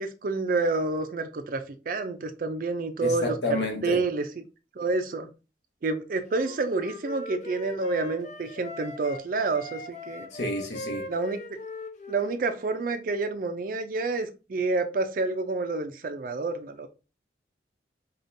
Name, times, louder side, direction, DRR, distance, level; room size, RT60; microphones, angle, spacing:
voice 1, 0.0-3.6 3.8-4.3 4.8-5.3 5.8-10.3 11.1-11.4 12.1-16.9, right 3 dB, 50° right, 0.4 m, -28 dB
voice 2, 3.0-4.0 10.3-11.1, left 1 dB, 75° left, 1.1 m, -30 dB
Wind instrument woodwind instrument, 6.3-9.2 9.5-12.9, left 2 dB, 40° left, 0.5 m, -40 dB
5.0 x 2.3 x 2.6 m
head